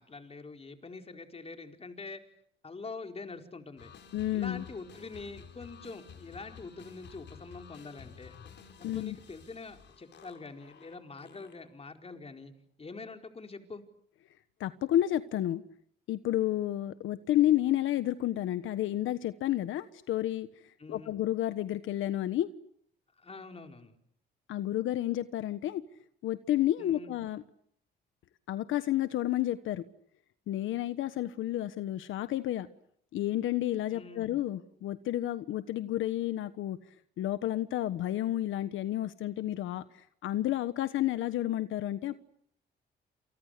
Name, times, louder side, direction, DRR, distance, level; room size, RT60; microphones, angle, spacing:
voice 1, 0.0-2.2 2.6-3.9 4.3-8.3 8.8-12.5 12.8-13.8 20.8-21.1 23.2-24.0 26.8-27.1 33.9-34.3, left 3 dB, 30° left, 5 dB, 4.6 m, -45 dB
sound 1, 3.8-11.8, left 7 dB, 65° left, 5.6 m, -52 dB
voice 2, 4.1-4.6 8.8-9.1 14.6-15.6 16.1-20.5 20.9-22.5 24.5-25.8 26.2-27.4 28.5-29.8 30.5-32.7 33.1-36.8 37.2-42.2, left 13 dB, 80° left, 12 dB, 1.3 m, -31 dB
29.0 x 29.0 x 6.8 m, 0.67 s
cardioid pair, 90°, 20 cm